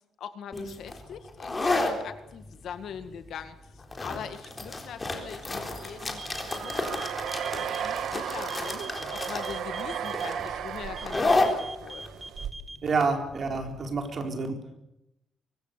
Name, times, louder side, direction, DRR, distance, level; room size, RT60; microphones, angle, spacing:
voice 1, 0.2-6.2 6.6-7.0 7.5-12.1, left 8 dB, 55° left, 10 dB, 1.9 m, -42 dB
sound 1, 0.5-13.9, left 2 dB, 15° left, 3.9 m, -32 dB
sound 2, 5.4-12.5, right 9 dB, 60° right, 1.7 m, -35 dB
sound 3, 6.2-7.8 8.5-10.3 11.0-12.8, right 2 dB, 10° right, 1.8 m, -42 dB
voice 2, 12.8-14.6, right 4 dB, 35° right, 4 dB, 4.4 m, -28 dB
24.5 x 23.5 x 6.9 m, 0.86 s
cardioid pair, 180°, 0 cm